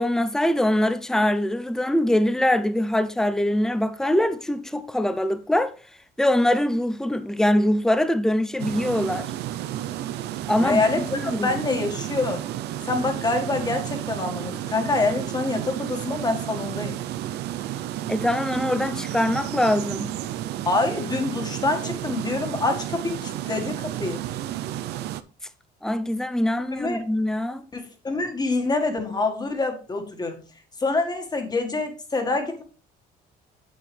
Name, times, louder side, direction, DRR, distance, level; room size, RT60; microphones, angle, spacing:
voice 1, 0.0-5.7 6.2-9.3 10.5-11.5 18.1-20.1 25.8-27.7, left 1 dB, 5° left, 0.6 m, -23 dB
sound 1, 8.6-25.2, right 12 dB, 80° right, 0.6 m, -32 dB
voice 2, 10.6-12.4 12.9-17.0 20.7-24.2 26.8-27.0 27.7-30.4 30.8-32.6, left 3 dB, 25° left, 1.8 m, -26 dB
8.5 x 6.2 x 3.3 m
cardioid pair, 110°, 17 cm